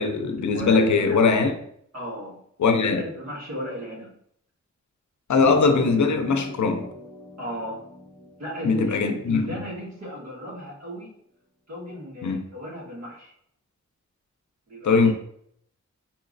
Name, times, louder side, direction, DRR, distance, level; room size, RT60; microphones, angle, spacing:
voice 1, 0.0-1.5 2.6-3.0 5.3-6.9 8.6-9.5 12.2-12.4 14.8-15.1, left 4 dB, 75° left, 0.5 m, -20 dB
voice 2, 0.5-1.2 1.9-2.4 3.0-4.2 7.4-7.9 8.4-11.1 11.7-13.3 14.7-15.1, equal, 60° right, 1.5 m, -36 dB
sound 1, 5.4-10.0, left 1 dB, ahead, 1.0 m, -42 dB
4.4 x 3.1 x 2.6 m
wide cardioid pair, 100°, 29 cm